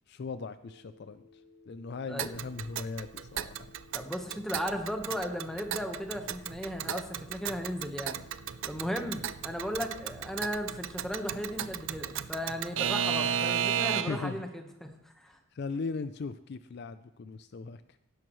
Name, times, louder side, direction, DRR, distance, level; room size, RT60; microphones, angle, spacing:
voice 1, 0.1-1.2 1.7-3.7 14.1-14.5 15.5-17.8, left 4 dB, 50° left, 12 dB, 0.4 m, -38 dB
Telephone, 0.6-12.8, left 4 dB, 20° right, 4.4 m, -58 dB
voice 2, 2.1-2.4 3.9-8.2 8.7-14.9 15.2-15.4, equal, ahead, 4 dB, 1.1 m, -36 dB
Alarm / Clock, 2.2-14.3, right 9 dB, 60° right, 0.4 m, -34 dB
18.5 x 10.5 x 3.1 m, 0.77 s
head